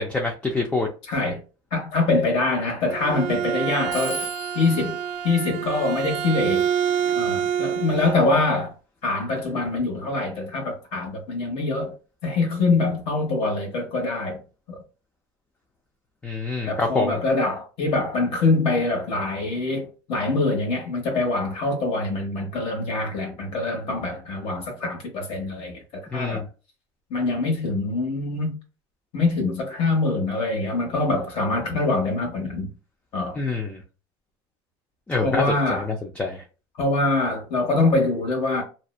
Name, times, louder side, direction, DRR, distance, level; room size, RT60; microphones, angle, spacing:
voice 1, 0.0-0.9 16.2-17.2 26.1-26.5 33.4-33.8 35.1-35.4 35.8-36.4, left 3 dB, 10° left, 0.3 m, -26 dB
voice 2, 1.1-1.4 1.7-4.3 4.5-5.0 5.2-6.7 7.1-8.7 9.0-11.9 12.2-14.4 14.7-14.8 16.7-26.4 27.1-28.6 29.1-32.7 33.1-33.4 35.2-35.8 36.8-38.6, left 3 dB, 50° left, 1.0 m, -24 dB
Bowed string instrument, 2.7-8.2, right 9 dB, 60° right, 0.4 m, -27 dB
Telephone, 3.9-6.4, equal, 80° left, 0.7 m, -38 dB
2.7 x 2.1 x 2.3 m
cardioid pair, 145°, 13 cm